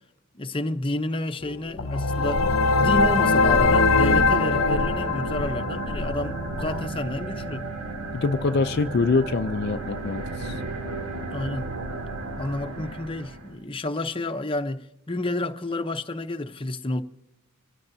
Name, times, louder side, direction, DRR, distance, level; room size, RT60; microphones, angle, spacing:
voice 1, 0.3-2.5 2.8-7.6 11.3-11.7 12.4-17.0, left 2 dB, 25° left, 0.8 m, -30 dB
sound 1, 1.4-6.8, left 3 dB, 85° left, 0.7 m, -22 dB
sound 2, 3.1-13.6, right 2 dB, 80° right, 2.4 m, -34 dB
voice 2, 8.1-10.6, left 3 dB, 50° left, 0.4 m, -24 dB
27.0 x 16.0 x 2.7 m
head